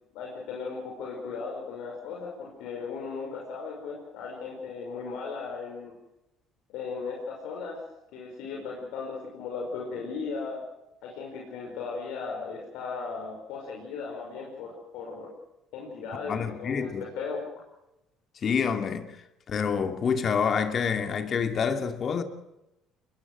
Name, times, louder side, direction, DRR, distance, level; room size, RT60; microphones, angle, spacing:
voice 1, 0.1-5.9 6.7-7.8 8.1-10.6 11.0-15.3 15.7-17.4, left 4 dB, 80° left, 5.6 m, -37 dB
voice 2, 16.3-17.0 18.4-19.1 19.5-22.2, left 6 dB, 45° left, 2.5 m, -27 dB
22.0 x 21.0 x 6.3 m
supercardioid pair, 90°, 0 cm